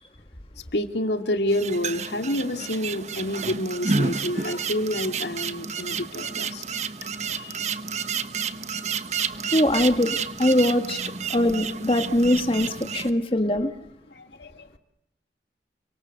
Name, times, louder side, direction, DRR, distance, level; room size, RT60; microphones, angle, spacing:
voice 1, 0.7-6.6 7.3-7.6 14.1-14.7, left 1 dB, 75° left, 7 dB, 2.4 m, -28 dB
sound 1, 1.5-13.1, right 5 dB, 40° right, 1.3 m, -30 dB
voice 2, 9.5-11.0 11.3-13.7, left 1 dB, 30° left, 6 dB, 1.7 m, -22 dB
30.0 x 25.5 x 6.7 m, 0.80 s
head